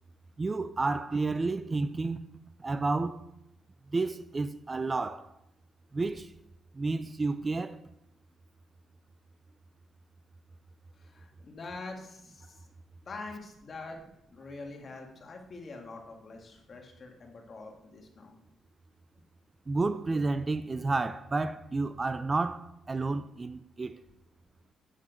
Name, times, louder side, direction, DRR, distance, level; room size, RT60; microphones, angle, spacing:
voice 1, 0.4-2.2 2.6-3.2 3.9-5.3 5.9-6.3 6.7-7.8 19.7-24.0, right 3 dB, 25° right, 0.4 m, -31 dB
voice 2, 10.9-12.7 13.1-14.0 14.3-18.4, left 3 dB, 45° left, 1.9 m, -45 dB
8.5 x 5.7 x 5.1 m
cardioid pair, 90°, 0 cm